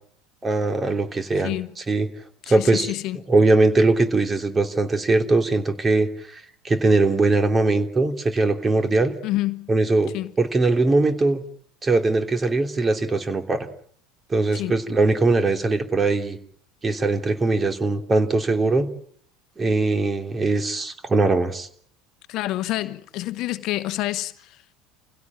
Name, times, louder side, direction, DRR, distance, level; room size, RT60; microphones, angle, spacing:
voice 1, 0.4-1.5 1.9-2.1 2.5-2.9 3.3-9.1 9.7-11.4 11.8-13.7 14.3-16.4 16.8-18.9 19.6-21.7, right 2 dB, 25° right, 3.2 m, -21 dB
voice 2, 1.4-1.7 2.5-3.2 9.2-9.7 10.1-10.3 14.5-14.8 22.3-24.6, left 16 dB, 55° left, 1.1 m, -28 dB
28.0 x 17.0 x 8.7 m
hypercardioid pair, 75°, 0 cm